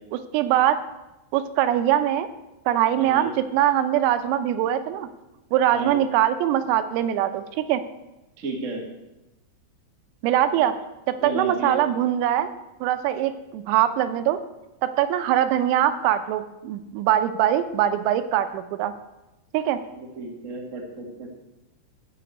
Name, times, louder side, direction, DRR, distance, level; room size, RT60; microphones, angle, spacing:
voice 1, 0.3-0.8 1.3-2.3 2.7-5.1 5.5-7.8 10.2-10.8 11.1-12.5 12.8-14.4 14.8-18.9 19.5-19.8, right 11 dB, 90° right, 10 dB, 3.5 m, -22 dB
voice 2, 2.9-3.3 5.7-6.0 8.4-8.8 11.2-11.8 20.0-21.3, right 3 dB, 70° right, 0 dB, 0.7 m, -32 dB
14.0 x 6.9 x 7.9 m, 0.98 s
omnidirectional pair, 5.9 m